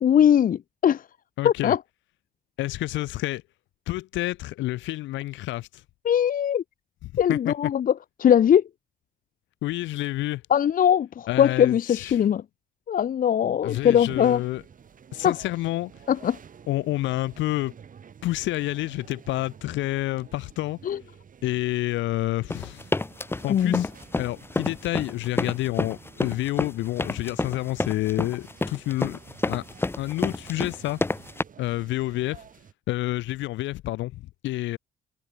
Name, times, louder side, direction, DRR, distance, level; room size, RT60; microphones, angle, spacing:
voice 1, 0.0-1.0 1.4-1.8 6.0-6.6 7.2-7.9 8.2-8.6 10.5-12.4 12.9-14.4 15.2-15.3 16.1-16.4 20.9-21.0 23.5-23.8, left 9 dB, 45° left, 0.9 m, -20 dB
voice 2, 1.4-1.8 2.6-3.4 3.9-5.8 7.0-7.5 9.6-10.4 11.3-12.2 13.6-14.6 15.1-15.9 16.7-17.7 18.2-20.8 21.4-22.8 23.4-23.9 24.2-29.2 29.5-29.6 30.0-31.0 31.6-32.4 32.9-34.8, left 17 dB, 85° left, 5.3 m, -29 dB
sound 1, 13.7-32.7, right 7 dB, 45° right, 7.6 m, -50 dB
sound 2, 22.5-31.4, left 2 dB, 10° left, 0.9 m, -28 dB
cardioid pair, 95°, 19 cm